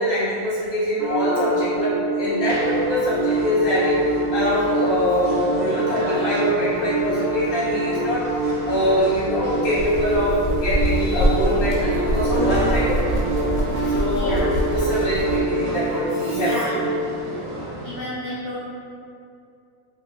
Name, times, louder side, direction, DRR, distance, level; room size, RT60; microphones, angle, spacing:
voice 1, 0.0-4.0 4.3-13.2 13.9-14.4 14.7-16.8, equal, 25° left, -9 dB, 0.5 m, -24 dB
sound 1, 1.0-17.0, right 1 dB, 70° right, 0.9 m, -25 dB
sound 2, 2.4-18.0, right 1 dB, 90° right, 1.0 m, -33 dB
sound 3, 8.2-15.4, equal, 90° left, 1.0 m, -26 dB
voice 2, 14.1-14.5 16.4-16.7 17.8-18.6, left 1 dB, 65° left, -9 dB, 0.7 m, -31 dB
2.5 x 2.4 x 2.7 m, 2.5 s
omnidirectional pair, 1.5 m